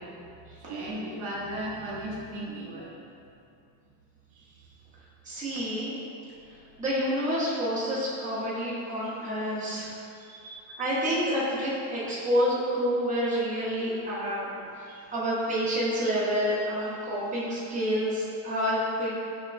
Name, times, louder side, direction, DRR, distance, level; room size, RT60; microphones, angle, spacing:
voice 1, 0.0-3.5 4.3-4.7 5.4-5.6 6.3-6.8 10.1-11.0 14.8-15.1 17.3-17.4, right 1 dB, 75° right, -3 dB, 0.8 m, -39 dB
voice 2, 5.2-5.9 6.8-9.9 10.8-14.8 15.1-19.2, equal, 15° right, -8 dB, 0.7 m, -28 dB
6.0 x 2.2 x 2.5 m, 2.6 s
cardioid pair, 140°, 50 cm